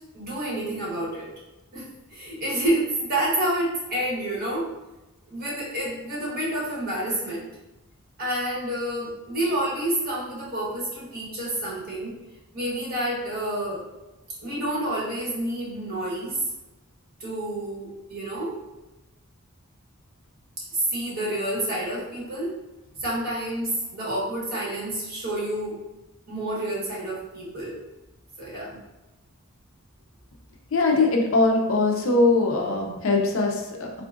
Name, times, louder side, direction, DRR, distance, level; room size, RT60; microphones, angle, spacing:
voice 1, 0.1-1.3 1.7-4.7 5.3-7.5 8.2-12.2 12.5-13.8 14.4-16.4 17.2-18.6 20.7-22.5 23.0-25.8 26.3-27.8 28.4-28.8, right 1 dB, 45° right, -6 dB, 1.1 m, -29 dB
voice 2, 30.7-33.9, left 3 dB, 60° left, 1 dB, 0.5 m, -21 dB
3.6 x 2.4 x 2.4 m, 1.0 s
head